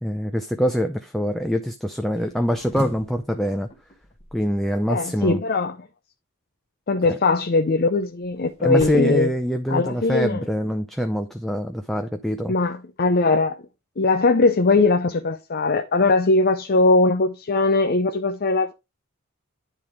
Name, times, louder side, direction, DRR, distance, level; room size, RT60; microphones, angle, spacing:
voice 1, 0.0-3.7 4.3-5.4 7.0-7.2 8.6-12.5, equal, ahead, 0.5 m, -24 dB
sound 1, 2.2-5.3 7.5-10.1, left 1 dB, 30° left, 1.5 m, -40 dB
voice 2, 4.9-5.9 6.9-9.3 9.7-10.4 12.5-13.6 14.0-18.7, left 3 dB, 45° left, 0.6 m, -20 dB
10.0 x 3.6 x 4.7 m
head